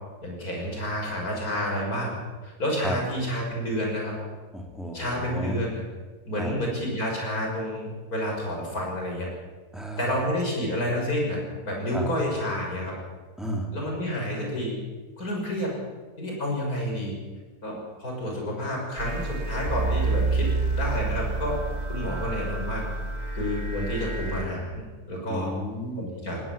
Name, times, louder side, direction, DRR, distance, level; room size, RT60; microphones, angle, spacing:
voice 1, 0.2-4.1 4.9-5.8 6.3-9.3 10.0-12.9 13.7-14.8 15.2-15.7 16.2-17.2 17.6-21.6 21.9-22.8 23.3-25.5 26.0-26.4, equal, 65° left, -1 dB, 6.6 m, -29 dB
voice 2, 4.5-5.6 6.4-6.6 9.7-10.2 11.9-12.1 13.4-13.7 25.3-26.1, equal, ahead, 0 dB, 3.5 m, -33 dB
sound 1, 19.0-24.5, right 3 dB, 25° right, 2.0 m, -28 dB
20.0 x 18.5 x 7.4 m, 1.4 s
omnidirectional pair, 1.7 m